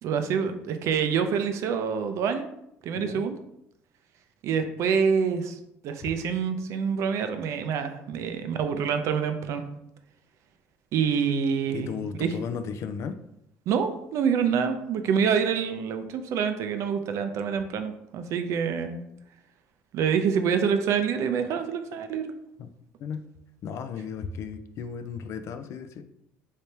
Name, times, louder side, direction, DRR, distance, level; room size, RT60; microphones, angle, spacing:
voice 1, 0.0-2.5 2.8-3.4 4.4-9.7 10.9-11.9 12.2-12.3 13.7-19.0 19.9-22.2, right 6 dB, 65° right, 8 dB, 0.5 m, -26 dB
voice 2, 2.9-3.3 11.7-13.2 22.6-22.7 23.0-23.3 23.6-26.0, left 6 dB, 60° left, 9 dB, 0.3 m, -35 dB
3.3 x 3.2 x 2.8 m, 0.78 s
supercardioid pair, 90°, 6 cm